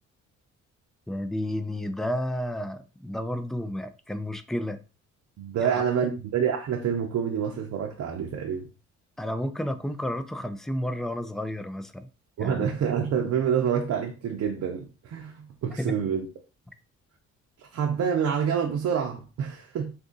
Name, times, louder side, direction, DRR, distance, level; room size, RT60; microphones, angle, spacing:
voice 1, 1.1-4.8 5.6-5.8 9.2-12.1 12.4-12.7 15.8-15.9, left 1 dB, ahead, 0.3 m, -31 dB
voice 2, 5.4-8.7 12.4-16.2 17.6-19.9, right 7 dB, 60° right, 0.7 m, -27 dB
2.6 x 2.5 x 3.8 m
cardioid pair, 90°, 30 cm